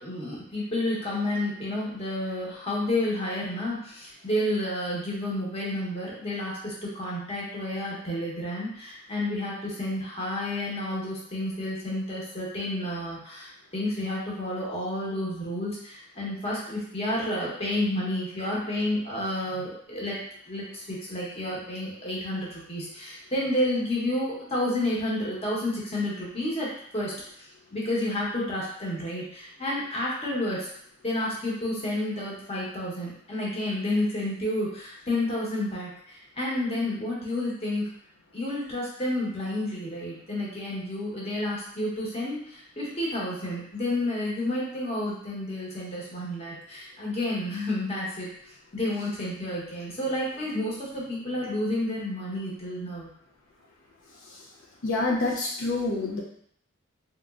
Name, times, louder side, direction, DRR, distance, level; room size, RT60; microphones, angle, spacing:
voice 1, 0.0-20.2 20.5-30.7 31.0-37.9 38.3-53.1, left 1 dB, 30° left, -5 dB, 1.0 m, -30 dB
voice 2, 54.8-56.2, left 2 dB, 75° left, -2 dB, 0.5 m, -27 dB
3.5 x 3.0 x 2.4 m, 0.65 s
head